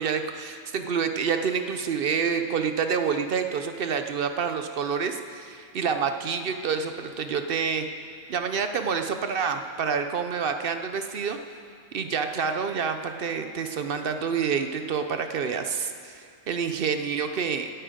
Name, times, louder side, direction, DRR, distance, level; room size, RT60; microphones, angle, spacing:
voice 1, 0.0-7.9 8.3-11.4 11.9-17.8, right 6 dB, 60° right, 7 dB, 0.6 m, -28 dB
18.0 x 9.1 x 5.0 m, 2.3 s
omnidirectional pair, 1.5 m